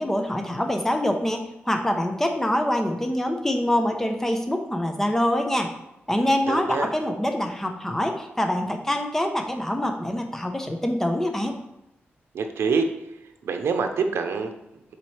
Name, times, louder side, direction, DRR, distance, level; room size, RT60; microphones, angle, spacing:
voice 1, 0.0-5.7 6.1-11.5, left 1 dB, 10° left, 4 dB, 0.8 m, -25 dB
voice 2, 6.5-6.9 12.3-12.9 13.4-14.5, right 4 dB, 85° right, 6 dB, 0.7 m, -25 dB
7.4 x 4.2 x 3.3 m, 0.88 s
wide cardioid pair, 110°, 4 cm